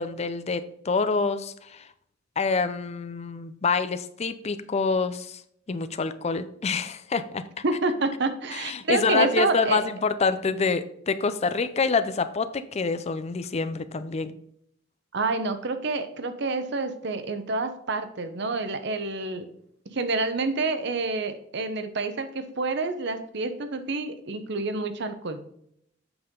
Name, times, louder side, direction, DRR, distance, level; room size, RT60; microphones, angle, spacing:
voice 1, 0.0-1.9 2.4-5.4 5.7-7.6 8.5-14.3, left 4 dB, 35° left, 12 dB, 0.4 m, -27 dB
voice 2, 7.6-9.8 15.1-19.5 19.9-25.4, right 3 dB, 65° right, 9 dB, 0.8 m, -28 dB
8.0 x 5.6 x 3.7 m, 0.70 s
head